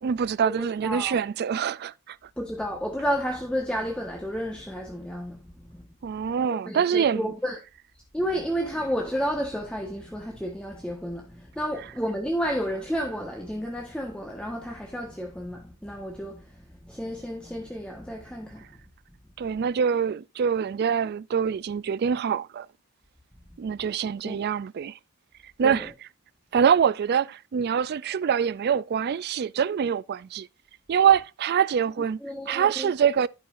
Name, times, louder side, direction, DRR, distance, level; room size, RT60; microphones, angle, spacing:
voice 1, 0.0-2.2 6.0-7.3 19.4-22.7 23.6-25.0 25.6-25.9 26.5-30.5 30.9-32.2 32.5-33.3, right 7 dB, 45° right, 0.3 m, -24 dB
voice 2, 0.8-1.2 2.4-5.8 6.5-7.6 8.1-16.6 16.8-18.6 24.2-24.4 25.6-25.9 32.2-32.9, equal, 5° left, 1.3 m, -31 dB
16.0 x 5.5 x 2.5 m
head